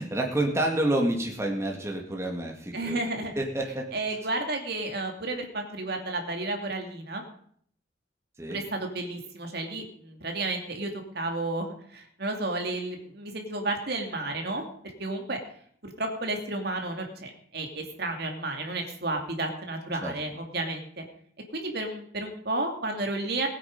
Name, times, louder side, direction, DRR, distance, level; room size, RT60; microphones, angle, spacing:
voice 1, 0.0-3.0 3.4-3.8 8.4-8.6 20.0-20.2, right 1 dB, 15° right, 0 dB, 2.1 m, -28 dB
voice 2, 2.7-3.3 3.9-7.2 8.5-14.6 15.0-15.4 15.8-21.0 21.5-23.5, right 2 dB, 55° right, 3 dB, 2.6 m, -32 dB
20.0 x 8.9 x 5.4 m, 0.62 s
head